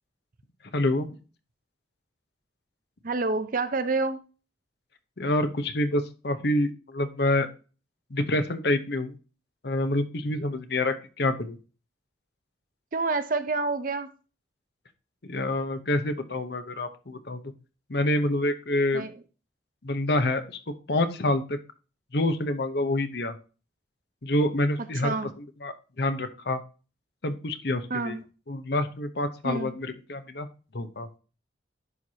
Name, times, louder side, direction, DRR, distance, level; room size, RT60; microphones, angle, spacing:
voice 1, 0.7-1.2 5.2-7.5 8.1-9.2 9.6-11.6 15.2-17.4 17.9-19.0 19.8-20.6 20.9-21.6 22.1-23.4 24.2-26.6 27.2-28.2 28.5-30.5 30.7-31.1, left 1 dB, 60° left, 0.9 m, -27 dB
voice 2, 3.0-4.2 12.9-14.1 18.9-19.1 25.0-25.3 27.9-28.2 29.4-29.7, right 3 dB, 50° right, 0.7 m, -28 dB
11.0 x 4.7 x 2.8 m
head